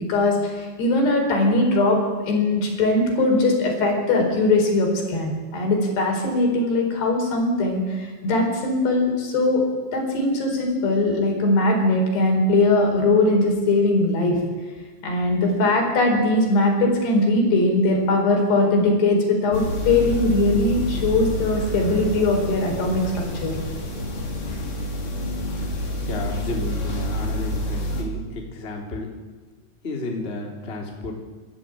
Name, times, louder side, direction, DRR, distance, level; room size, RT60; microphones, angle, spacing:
voice 1, 0.1-9.6 9.9-14.4 15.0-23.5, left 2 dB, 65° left, 1 dB, 6.5 m, -20 dB
sound 1, 19.5-28.0, left 1 dB, 40° left, 4.3 m, -28 dB
voice 2, 26.1-29.1 29.8-31.2, left 2 dB, 15° left, 0 dB, 2.7 m, -32 dB
26.0 x 13.0 x 9.1 m, 1.4 s
omnidirectional pair, 5.1 m